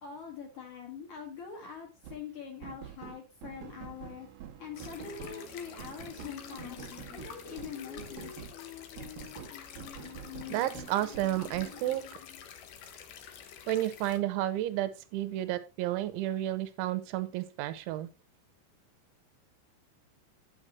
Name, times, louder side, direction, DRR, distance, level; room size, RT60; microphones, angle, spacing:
voice 1, 0.0-4.3 4.6-8.4, left 7 dB, 50° left, 1 dB, 2.7 m, -44 dB
sound 1, 2.0-2.2 2.6-8.5 9.0-12.0, right 8 dB, 70° right, 2.4 m, -47 dB
sound 2, 4.7-14.2, left 8 dB, 85° left, 1.8 m, -49 dB
Female singing, 4.8-12.4, left 12 dB, 70° left, 2.9 m, -49 dB
voice 2, 10.5-12.0 13.7-18.1, right 14 dB, 85° right, 12 dB, 3.2 m, -31 dB
8.9 x 8.9 x 3.1 m, 0.29 s
omnidirectional pair, 5.4 m